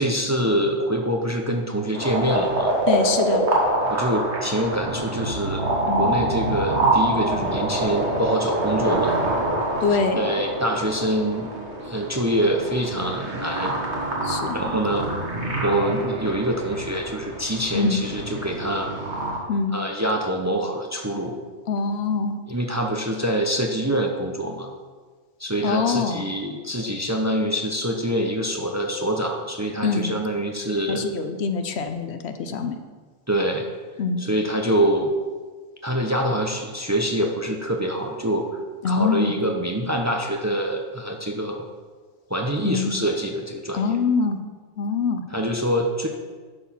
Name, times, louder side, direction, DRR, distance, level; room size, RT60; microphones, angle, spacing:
voice 1, 0.0-2.7 3.9-5.6 5.9-9.1 10.1-11.5 11.8-13.7 14.5-15.1 15.6-18.9 19.7-21.3 22.5-24.7 25.4-31.0 33.3-33.7 34.2-35.1 35.8-38.5 38.8-41.6 42.3-44.0 45.3-46.1, right 1 dB, 20° right, 2 dB, 0.7 m, -25 dB
sound 1, 1.9-19.4, right 1 dB, 85° right, 1.9 m, -26 dB
voice 2, 2.9-3.4 5.9-6.1 9.8-10.3 14.2-14.6 17.7-18.0 19.5-19.7 21.7-22.4 25.6-26.2 29.8-30.1 30.9-32.8 34.0-34.2 38.8-39.3 42.6-43.0 43.7-44.4 44.8-45.2, left 5 dB, 75° left, 8 dB, 1.0 m, -24 dB
11.0 x 4.7 x 5.7 m, 1.4 s
omnidirectional pair, 1.1 m